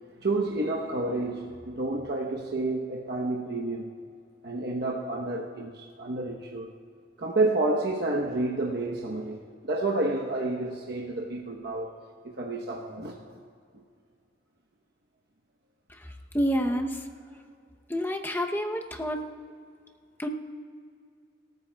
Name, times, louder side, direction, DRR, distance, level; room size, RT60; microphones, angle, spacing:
voice 1, 0.2-3.9 4.4-6.7 7.2-11.9 12.2-13.4 13.7-13.8, right 2 dB, 60° right, -2 dB, 1.0 m, -30 dB
voice 2, 16.3-17.0 17.9-19.2 20.2-20.3, equal, 10° left, 4 dB, 0.8 m, -28 dB
25.5 x 13.5 x 2.3 m, 2.2 s
head